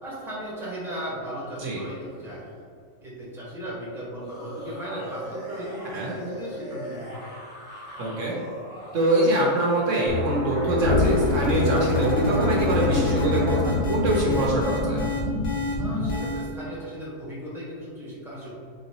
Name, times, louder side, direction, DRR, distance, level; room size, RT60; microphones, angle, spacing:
voice 1, 0.0-2.4 3.0-7.2 15.8-18.5, equal, ahead, -8 dB, 1.2 m, -36 dB
sound 1, 0.9-2.6 4.2-10.7, equal, 90° left, 1.5 m, -41 dB
voice 2, 8.0-8.3 8.9-15.0, right 1 dB, 70° right, -3 dB, 1.1 m, -24 dB
sound 2, 10.1-15.5 15.8-16.0, left 5 dB, 15° right, 0.5 m, -29 dB
sound 3, 10.7-16.5, left 1 dB, 30° left, 0.7 m, -26 dB
4.0 x 3.8 x 2.8 m, 2.3 s
omnidirectional pair, 1.4 m